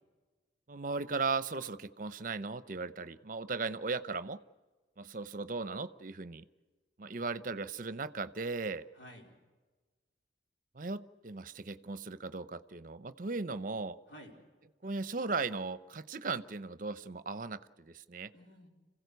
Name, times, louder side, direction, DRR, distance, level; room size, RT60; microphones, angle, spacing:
voice 1, 0.7-4.4 5.0-6.4 7.0-8.8 10.7-14.0 14.8-18.3, right 4 dB, 45° right, 15 dB, 0.7 m, -37 dB
voice 2, 7.1-7.7 8.9-9.4 14.1-14.4 18.3-18.7, equal, 80° left, 1 dB, 4.5 m, -54 dB
27.0 x 16.0 x 8.2 m, 1.3 s
head